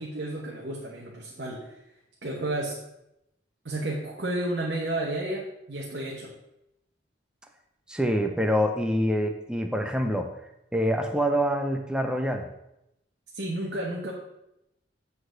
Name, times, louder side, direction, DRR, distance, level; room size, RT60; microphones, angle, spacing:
voice 1, 0.0-1.7 2.2-2.8 3.6-6.3 13.3-14.1, right 1 dB, 60° right, -3 dB, 1.2 m, -32 dB
voice 2, 7.9-10.3 10.7-12.5, equal, 5° right, 4 dB, 0.6 m, -26 dB
7.7 x 4.1 x 6.4 m, 0.85 s
head